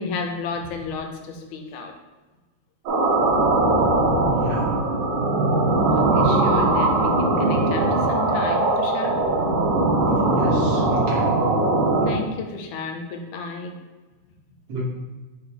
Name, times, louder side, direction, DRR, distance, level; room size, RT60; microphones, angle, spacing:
voice 1, 0.0-1.9 5.9-9.2 12.0-13.8, left 4 dB, 80° left, 3 dB, 2.2 m, -32 dB
sound 1, 2.9-12.1, right 2 dB, 90° right, 3.2 m, -20 dB
voice 2, 4.3-4.7 10.3-11.3 14.7-14.8, equal, 60° right, -4 dB, 1.8 m, -30 dB
9.8 x 3.9 x 3.4 m, 1.2 s
omnidirectional pair, 3.5 m